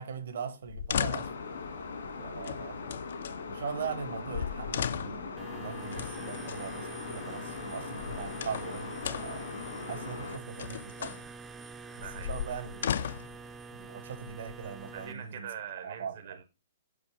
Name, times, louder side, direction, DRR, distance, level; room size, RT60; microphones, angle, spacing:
voice 1, 0.0-1.3 2.2-2.8 3.5-9.5 9.9-11.2 11.9-13.1 13.7-15.5 15.8-16.4, right 6 dB, 70° right, 1.2 m, -40 dB
sound 1, 0.7-1.5 2.4-3.4 4.0-4.1 4.3-5.3 5.9-6.6 7.8-8.7 9.0-9.5 10.3-11.2 12.0-13.4 14.2-14.9, left 9 dB, 60° left, 0.3 m, -36 dB
sound 2, 1.0-10.4, left 4 dB, 80° left, 2.0 m, -40 dB
sound 3, 5.4-15.1, right 4 dB, 10° right, 0.4 m, -46 dB
voice 2, 12.0-12.3 14.9-16.4, right 8 dB, 55° right, 0.7 m, -43 dB
5.2 x 4.6 x 5.0 m
hypercardioid pair, 160°, 0 cm